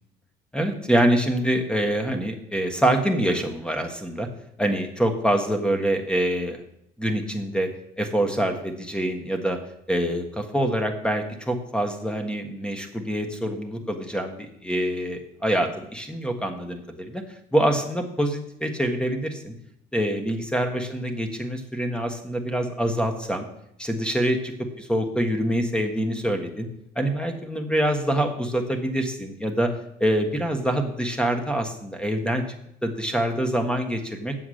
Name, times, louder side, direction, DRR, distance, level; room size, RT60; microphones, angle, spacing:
voice 1, 0.5-4.3 4.6-6.6 7.0-7.7 8.0-9.6 9.9-17.2 17.5-19.5 19.9-23.4 23.8-24.5 24.8-26.7 26.9-29.7 30.0-32.6 32.8-34.4, right 1 dB, 5° left, 6 dB, 1.4 m, -25 dB
7.8 x 7.4 x 6.4 m, 0.77 s
cardioid pair, 110°, 17 cm